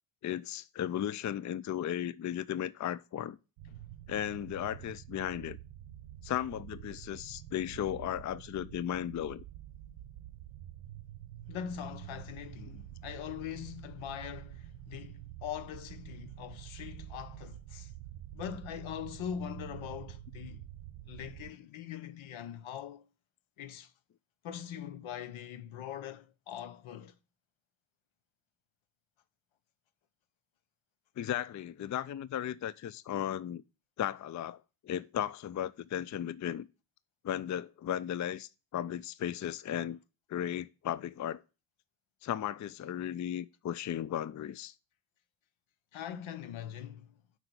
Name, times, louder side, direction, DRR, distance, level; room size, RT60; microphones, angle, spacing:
voice 1, 0.2-3.4 4.1-5.6 6.2-9.4 12.7-12.8 31.2-33.6 34.0-36.7 37.2-40.0 40.3-41.4 42.2-44.7, left 10 dB, 35° left, 0.5 m, -35 dB
sound 1, 3.6-21.5, right 12 dB, 85° right, 0.7 m, -48 dB
voice 2, 11.5-17.9 18.3-20.6 21.1-23.0 23.6-23.9 24.4-27.1 45.9-47.1, left 9 dB, 70° left, 0.8 m, -42 dB
5.8 x 4.8 x 6.6 m
hypercardioid pair, 45°, 49 cm